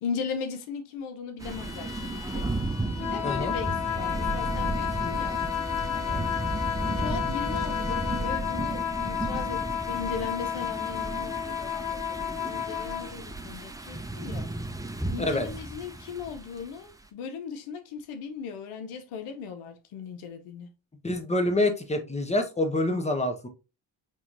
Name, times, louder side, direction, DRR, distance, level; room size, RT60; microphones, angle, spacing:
voice 1, 0.0-2.5 3.0-5.4 5.9-6.3 6.8-14.5 15.1-20.7, left 6 dB, 85° left, 0.7 m, -38 dB
Bowed string instrument, 1.4-8.4, left 7 dB, 70° left, 1.5 m, -44 dB
sound 1, 1.4-16.7, right 2 dB, 5° right, 0.7 m, -34 dB
sound 2, 2.9-13.1, left 9 dB, 40° left, 0.6 m, -31 dB
voice 2, 3.2-3.5 15.2-15.5 21.0-23.5, left 2 dB, 15° left, 1.0 m, -26 dB
5.6 x 2.9 x 2.5 m
supercardioid pair, 55°, 49 cm